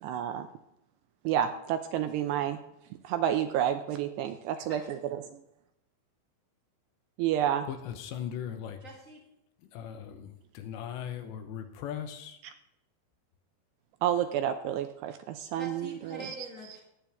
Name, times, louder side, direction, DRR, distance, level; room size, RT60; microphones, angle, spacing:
voice 1, 0.0-0.5 1.2-2.6 3.0-5.4 7.2-7.7 14.0-16.5, right 10 dB, 80° right, 8 dB, 2.5 m, -30 dB
voice 2, 7.7-8.8 9.7-12.4, left 9 dB, 75° left, 8 dB, 3.1 m, -39 dB
voice 3, 8.8-9.2 15.5-16.8, right 1 dB, 40° left, -2 dB, 1.1 m, -44 dB
19.0 x 8.7 x 3.5 m, 0.83 s
omnidirectional pair, 5.3 m